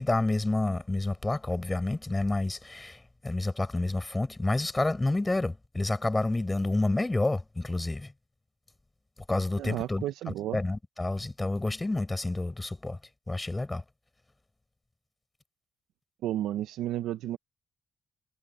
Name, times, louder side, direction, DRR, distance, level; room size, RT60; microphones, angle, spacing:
voice 1, 0.0-8.1 9.3-10.0 10.5-13.0 13.3-13.8, left 2 dB, 15° left, 5.2 m, -29 dB
voice 2, 9.6-10.6 16.2-17.4, right 13 dB, 85° right, 0.8 m, -32 dB
cardioid pair, 90°, 0 cm